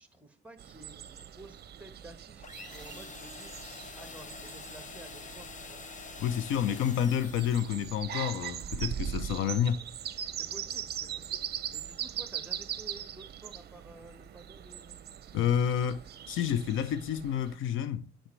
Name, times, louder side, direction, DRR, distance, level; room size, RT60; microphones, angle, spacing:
voice 1, 0.0-3.5 3.9-5.8 10.4-15.0, right 2 dB, 5° right, 1.3 m, -52 dB
sound 1, 0.6-17.5, right 10 dB, 55° right, 0.6 m, -41 dB
sound 2, 2.4-8.0, left 5 dB, 40° left, 0.8 m, -46 dB
voice 2, 6.2-9.8 15.3-18.1, left 9 dB, 80° left, 0.6 m, -29 dB
Bass guitar, 8.6-14.8, right 2 dB, 20° left, 1.1 m, -60 dB
9.0 x 4.2 x 3.2 m
cardioid pair, 90°, 20 cm